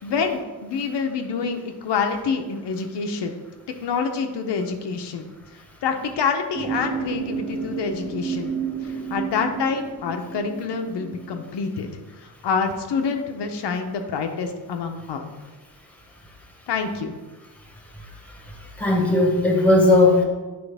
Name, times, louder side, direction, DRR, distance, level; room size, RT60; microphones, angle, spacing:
voice 1, 0.0-3.4 3.8-5.3 5.8-8.5 8.8-11.9 12.4-15.3 16.7-17.1, left 5 dB, 90° left, 4 dB, 0.8 m, -27 dB
sound 1, 6.5-11.5, right 6 dB, 35° right, 1.1 m, -31 dB
voice 2, 18.0-20.2, left 2 dB, 5° left, 0 dB, 1.0 m, -18 dB
9.5 x 4.5 x 3.4 m, 1.3 s
wide cardioid pair, 160°, 41 cm